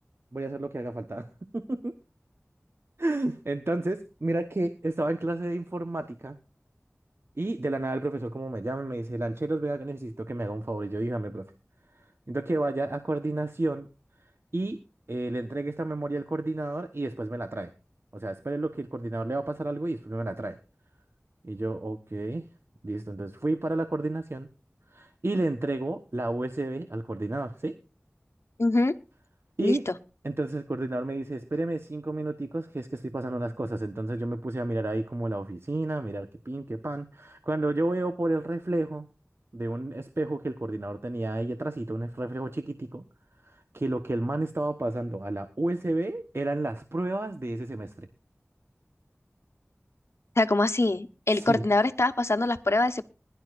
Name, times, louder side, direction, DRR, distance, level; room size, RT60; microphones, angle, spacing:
voice 1, 0.3-1.9 3.0-6.4 7.4-11.5 12.3-13.9 14.5-14.8 15.1-17.7 18.1-20.6 21.4-22.4 22.8-24.5 24.9-27.8 29.6-29.8 30.2-39.1 39.5-43.0 43.4-48.1 51.3-51.7, right 2 dB, 60° right, 8 dB, 1.2 m, -31 dB
voice 2, 28.6-28.9 29.6-29.9 50.4-53.0, left 2 dB, 70° left, 9 dB, 1.1 m, -24 dB
21.0 x 11.5 x 2.5 m, 0.32 s
wide cardioid pair, 45°, 5 cm